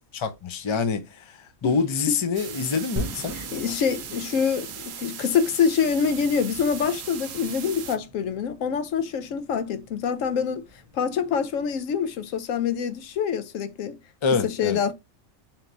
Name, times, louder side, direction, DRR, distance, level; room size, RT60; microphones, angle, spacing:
voice 1, 0.1-3.4 14.2-14.8, left 5 dB, 35° left, 0.5 m, -26 dB
sound 1, 2.3-8.0, right 8 dB, 60° right, 0.8 m, -38 dB
sound 2, 3.0-13.2, equal, 20° right, 0.6 m, -42 dB
voice 2, 3.3-10.6 10.9-14.0 14.4-14.9, left 6 dB, 85° left, 1.0 m, -25 dB
3.5 x 2.9 x 3.8 m
omnidirectional pair, 1.3 m